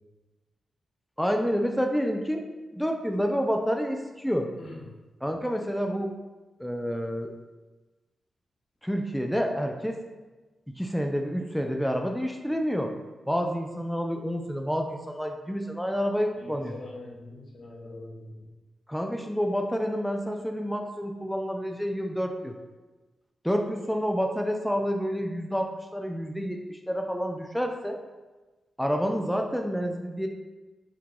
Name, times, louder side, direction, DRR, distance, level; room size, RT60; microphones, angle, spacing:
voice 1, 1.2-2.4 2.7-4.5 5.2-6.1 6.6-7.3 8.8-10.0 10.8-12.9 13.3-16.7 18.9-22.5 23.4-28.0 28.8-30.3, equal, ahead, 3 dB, 0.3 m, -28 dB
voice 2, 16.3-18.5, left 2 dB, 70° left, -3 dB, 1.0 m, -43 dB
4.7 x 2.2 x 3.6 m, 1.2 s
cardioid pair, 80°, 0 cm